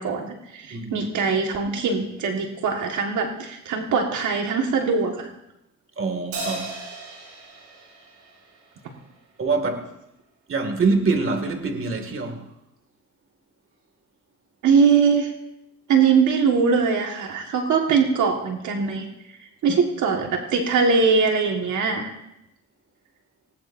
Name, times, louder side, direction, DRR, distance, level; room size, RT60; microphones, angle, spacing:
voice 1, 0.0-5.3 14.6-15.3 15.9-19.1 19.6-22.1, right 5 dB, 75° right, 1.8 m, -21 dB
voice 2, 0.7-1.1 6.0-6.7 9.4-9.9 10.5-12.5 19.7-19.8, right 4 dB, 45° right, 2.3 m, -25 dB
Crash cymbal, 6.3-9.0, right 2 dB, 90° right, 7.3 m, -36 dB
19.5 x 19.0 x 2.7 m
cardioid pair, 90°, 30 cm